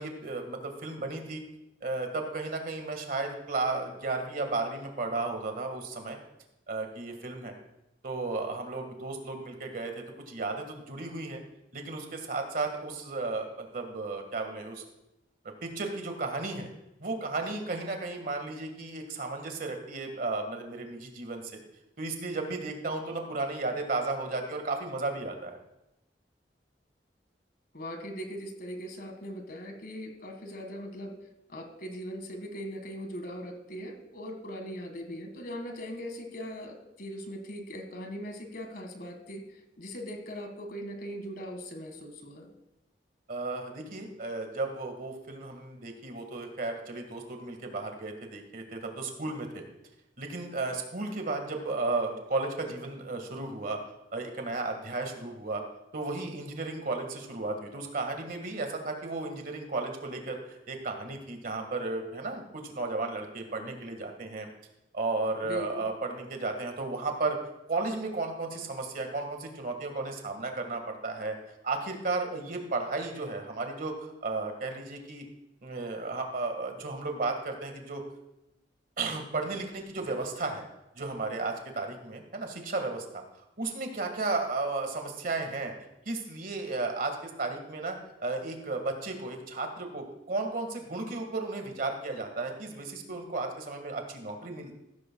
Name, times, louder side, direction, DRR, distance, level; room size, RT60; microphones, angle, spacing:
voice 1, 0.0-1.4 1.8-6.2 6.7-7.5 8.0-11.4 11.7-14.8 15.6-16.7 17.0-21.6 22.0-25.6 43.3-49.6 50.2-53.8 54.1-55.6 55.9-64.5 64.9-67.4 67.7-71.4 71.6-75.3 75.6-78.0 79.0-80.6 81.0-83.2 83.6-85.7 86.1-94.7, right 3 dB, 55° right, 4 dB, 1.7 m, -34 dB
voice 2, 27.7-31.2 31.5-42.5 65.4-65.9, equal, 55° left, 5 dB, 1.8 m, -40 dB
14.5 x 13.0 x 2.3 m, 0.90 s
head